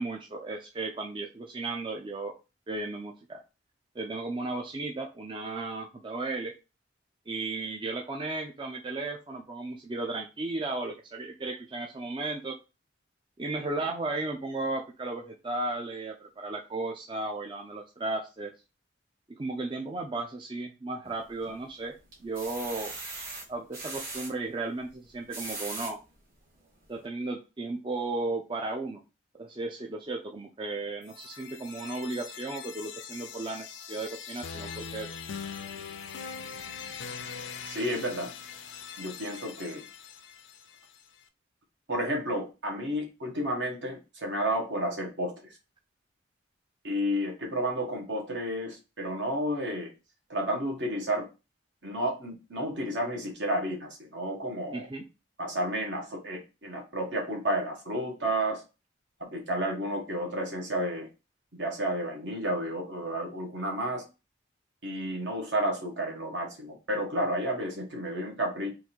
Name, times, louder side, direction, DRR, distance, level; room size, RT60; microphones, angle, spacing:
voice 1, 0.0-2.3 2.7-3.4 3.9-6.5 7.3-12.6 13.4-18.5 19.3-21.9 22.2-22.9 23.5-26.0 26.9-29.0 29.4-35.1 54.7-55.0, right 2 dB, 25° right, 1 dB, 0.4 m, -35 dB
sound 1, 21.0-21.6 22.1-24.3 25.1-25.9 26.5-26.6 27.0-27.1, right 2 dB, 45° right, 1.7 m, -39 dB
sound 2, 31.0-41.0, left 6 dB, 75° left, 0.5 m, -42 dB
voice 2, 37.6-38.3 39.0-39.8 41.9-45.6 46.8-49.9 50.3-51.3 51.8-54.9 55.4-58.6 59.2-61.1 61.5-64.0 64.8-68.7, right 1 dB, 70° right, 1 dB, 1.4 m, -31 dB
3.7 x 2.6 x 4.4 m, 0.29 s
head